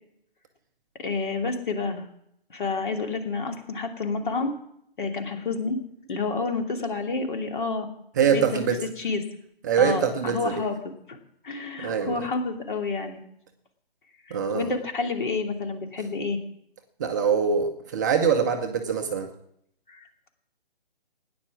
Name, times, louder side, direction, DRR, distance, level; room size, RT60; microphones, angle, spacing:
voice 1, 1.0-2.0 2.5-4.5 5.0-5.8 6.1-7.9 8.3-8.7 9.0-9.2 9.8-10.9 11.4-13.2 14.3-16.4 19.9-20.0, left 4 dB, 55° left, 4 dB, 2.7 m, -29 dB
voice 2, 8.2-8.8 9.6-10.6 11.8-12.2 14.3-14.7 17.0-19.3, right 7 dB, 20° right, 4 dB, 0.7 m, -24 dB
17.0 x 10.0 x 6.1 m, 0.74 s
figure-of-eight pair, 150°, 30 cm